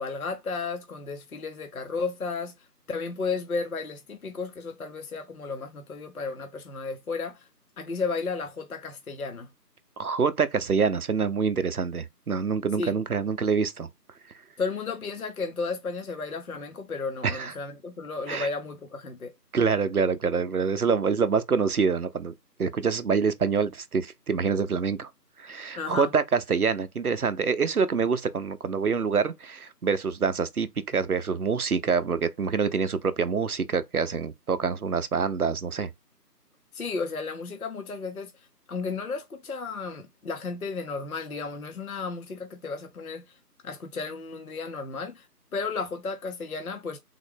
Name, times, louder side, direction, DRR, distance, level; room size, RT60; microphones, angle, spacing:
voice 1, 0.0-7.5 7.8-9.5 12.8-12.9 14.6-19.3 25.8-26.1 36.7-43.4 43.6-45.3 45.5-47.0, left 4 dB, 60° left, 0.6 m, -33 dB
voice 2, 10.0-13.9 17.2-17.5 18.3-18.5 19.5-22.3 22.6-25.1 25.4-35.9, right 5 dB, 65° right, 0.5 m, -26 dB
3.6 x 2.1 x 3.3 m
figure-of-eight pair, 170°, 49 cm